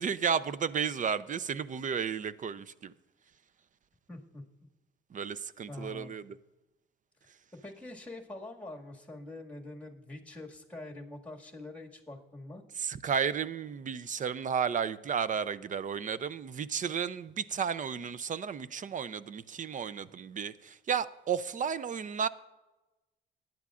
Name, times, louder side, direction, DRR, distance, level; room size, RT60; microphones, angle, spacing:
voice 1, 0.0-2.9 5.1-6.4 12.8-22.3, right 7 dB, 40° right, 0.5 m, -33 dB
voice 2, 4.1-4.4 5.7-6.2 7.5-12.6, left 2 dB, 5° left, 1.9 m, -45 dB
19.5 x 10.5 x 2.5 m
cardioid pair, 90°, 20 cm